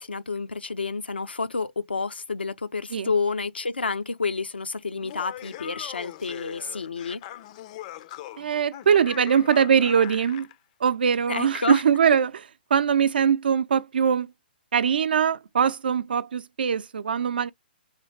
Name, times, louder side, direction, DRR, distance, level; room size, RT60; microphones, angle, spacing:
voice 1, 0.0-7.2 11.3-11.8, left 4 dB, 90° left, 0.7 m, -29 dB
Laughter, 5.0-10.6, left 13 dB, 40° left, 0.5 m, -41 dB
voice 2, 8.4-10.5 10.8-12.5 12.7-14.3 14.7-17.5, right 7 dB, 70° right, 0.5 m, -22 dB
4.0 x 3.3 x 3.2 m
hypercardioid pair, 130°, 5 cm